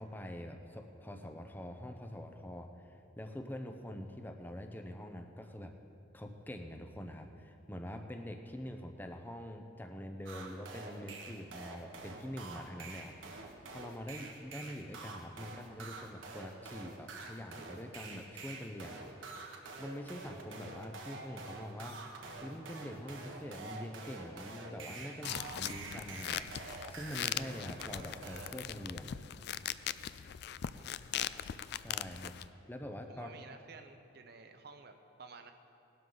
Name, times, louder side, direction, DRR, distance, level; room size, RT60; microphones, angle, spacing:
voice 1, 0.0-5.7 6.1-13.2 13.7-19.1 19.8-22.0 22.4-29.3 31.8-32.3 32.7-33.3, equal, 10° left, 5 dB, 0.7 m, -45 dB
sound 1, 10.3-28.5, right 3 dB, 90° right, 1.5 m, -47 dB
sound 2, 25.2-32.5, left 10 dB, 55° left, 0.3 m, -40 dB
voice 2, 30.7-31.3 33.1-35.5, right 4 dB, 55° right, 7 dB, 0.8 m, -53 dB
18.5 x 12.0 x 4.0 m, 2.8 s
head